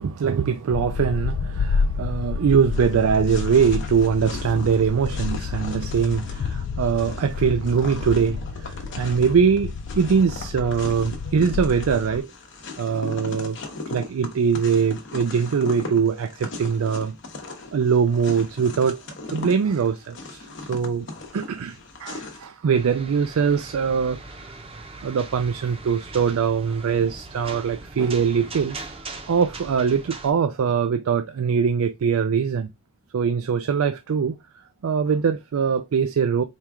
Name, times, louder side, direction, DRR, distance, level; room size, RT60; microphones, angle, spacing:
voice 1, 0.0-12.3 12.8-13.6 13.9-17.1 17.7-19.0 19.3-21.1 21.3-24.2 25.0-28.8 29.3-32.7 33.1-34.4 34.8-36.4, right 6 dB, 85° right, 0.4 m, -22 dB
sound 1, 0.7-12.2, left 5 dB, 75° left, 0.3 m, -29 dB
sound 2, 2.7-22.4, left 2 dB, 55° left, 0.9 m, -38 dB
sound 3, 22.7-30.3, right 3 dB, 25° right, 0.6 m, -40 dB
4.5 x 2.4 x 3.4 m
head